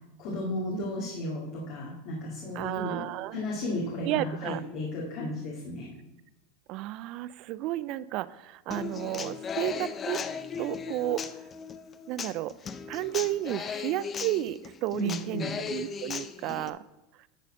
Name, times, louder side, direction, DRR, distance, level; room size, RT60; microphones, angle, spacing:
voice 1, 0.2-3.0 3.3-5.9 14.9-15.6, left 1 dB, 55° left, -4 dB, 2.1 m, -34 dB
voice 2, 2.6-3.4 4.0-4.6 6.7-10.2 10.6-11.3 12.1-12.6 12.9-16.8 17.2-17.3, right 15 dB, 50° right, 18 dB, 0.3 m, -32 dB
Human voice / Acoustic guitar, 8.7-16.7, left 6 dB, 25° left, 0.5 m, -37 dB
10.5 x 4.2 x 6.4 m, 0.99 s
supercardioid pair, 130°, 0 cm